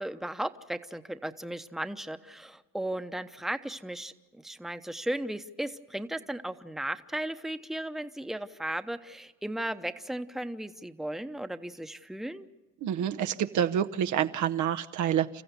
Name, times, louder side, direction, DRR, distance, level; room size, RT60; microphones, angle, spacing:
voice 1, 0.0-12.5, right 1 dB, ahead, 9 dB, 0.9 m, -36 dB
voice 2, 12.8-15.4, right 9 dB, 75° right, 9 dB, 0.9 m, -28 dB
29.0 x 14.5 x 8.2 m, 1.2 s
cardioid pair, 90°, 30 cm